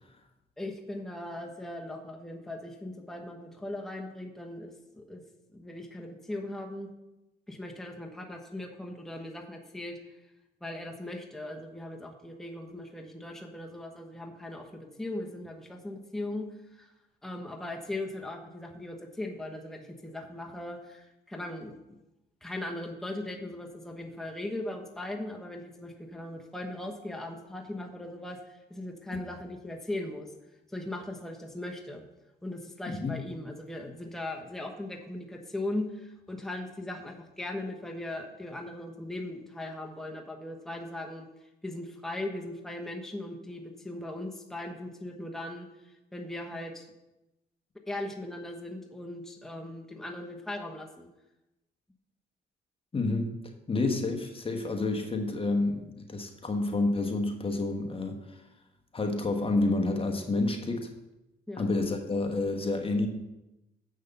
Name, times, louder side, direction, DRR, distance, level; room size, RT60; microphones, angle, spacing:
voice 1, 0.6-5.2 5.5-6.9 7.5-10.0 10.6-16.9 17.2-21.8 22.4-30.3 30.7-32.0 32.4-41.3 41.6-46.9 47.9-51.1 61.5-61.6, left 1 dB, ahead, 1 dB, 1.1 m, -39 dB
voice 2, 32.9-33.2 52.9-53.3 53.7-58.4 58.9-60.9 61.6-63.1, left 2 dB, 25° left, 4 dB, 1.2 m, -29 dB
7.1 x 6.4 x 6.8 m, 0.95 s
cardioid pair, 90°, 20 cm